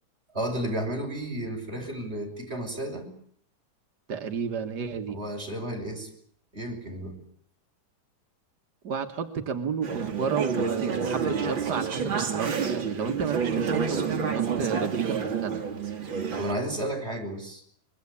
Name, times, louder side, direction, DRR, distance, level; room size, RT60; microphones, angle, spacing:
voice 1, 0.3-3.1 5.1-6.1 6.5-7.2 16.4-17.6, right 1 dB, 15° right, 1 dB, 6.1 m, -32 dB
voice 2, 4.1-5.2 8.8-15.6, right 6 dB, 55° right, 5 dB, 1.1 m, -31 dB
Conversation / Chatter, 9.8-16.5, right 6 dB, 40° right, 2.7 m, -29 dB
24.0 x 22.5 x 8.5 m, 0.62 s
omnidirectional pair, 4.0 m